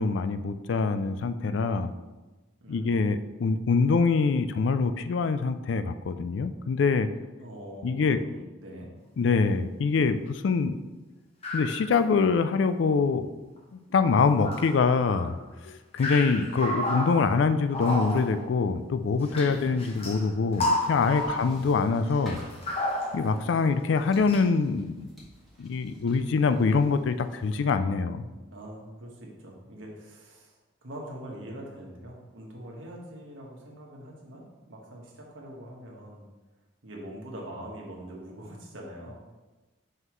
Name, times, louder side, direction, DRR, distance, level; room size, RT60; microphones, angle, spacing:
voice 1, 0.0-1.9 2.7-7.1 7.8-8.2 9.2-10.8 11.5-13.3 13.7-15.4 15.6-22.4 23.1-25.1 25.6-28.2, left 4 dB, 70° left, 11 dB, 0.4 m, -25 dB
voice 2, 2.6-2.9 7.4-8.9 19.4-19.8 21.3-21.7 23.3-23.8 28.5-30.6 30.8-36.2 36.8-39.1, right 1 dB, 85° right, -1 dB, 1.4 m, -43 dB
sound 1, 11.4-12.0 12.5-12.6 13.6-13.7 14.1-15.4 16.0-18.5 19.2-20.3 20.5-21.8 22.1-23.7 24.3-24.4, left 1 dB, 30° left, 1.0 m, -32 dB
sound 2, 20.7-27.8, equal, ahead, 1.7 m, -50 dB
5.7 x 5.5 x 3.1 m, 1.2 s
head